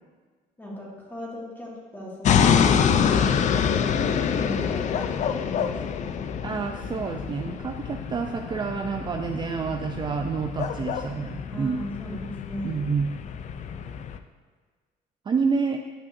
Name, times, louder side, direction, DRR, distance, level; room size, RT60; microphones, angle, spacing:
voice 1, 0.6-6.3 11.5-12.8, left 1 dB, 10° left, -4 dB, 2.0 m, -38 dB
sound 1, 2.2-14.2, left 7 dB, 45° left, 0.4 m, -26 dB
voice 2, 6.4-11.8 12.6-13.1 15.3-15.8, right 5 dB, 25° right, 4 dB, 0.4 m, -28 dB
11.0 x 5.6 x 2.6 m, 1.5 s
cardioid pair, 110°, 17 cm